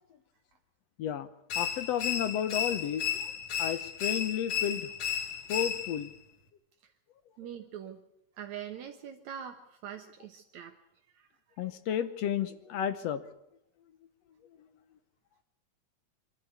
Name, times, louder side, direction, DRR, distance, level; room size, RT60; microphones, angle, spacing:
sound 1, 1.5-6.1, left 8 dB, 50° left, 2.3 m, -33 dB
voice 1, 1.6-3.0 3.6-4.9 5.5-6.1 11.6-13.2, left 9 dB, 65° left, 13 dB, 1.8 m, -32 dB
voice 2, 7.4-8.0 8.4-10.8 11.1-11.7, right 9 dB, 70° right, 5 dB, 2.3 m, -44 dB
24.0 x 13.5 x 9.5 m, 0.80 s
omnidirectional pair, 3.5 m